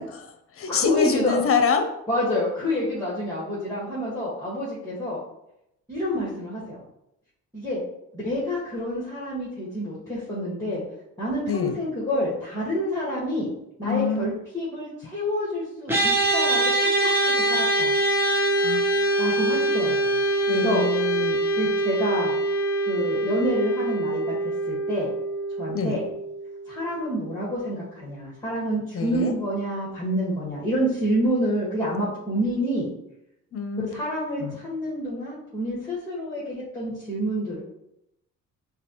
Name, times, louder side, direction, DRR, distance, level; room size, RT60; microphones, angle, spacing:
voice 1, 0.0-1.9 11.5-11.8 13.8-14.3 18.6-18.8 20.5-21.4 25.7-26.0 28.9-29.3 33.5-33.9 34.4-34.6, left 5 dB, 45° left, 7 dB, 0.8 m, -26 dB
voice 2, 0.7-1.4 2.1-5.2 5.9-6.8 7.5-7.8 8.1-10.8 11.2-13.5 13.8-17.9 19.2-20.2 20.5-20.8 21.6-22.4 22.9-24.3 24.7-25.1 25.6-26.1 26.7-32.9 33.8-37.6, equal, 10° left, -7 dB, 1.7 m, -28 dB
sound 1, 15.9-27.3, right 1 dB, 5° right, 1.0 m, -24 dB
6.6 x 2.4 x 3.0 m, 0.81 s
cardioid pair, 90°, 30 cm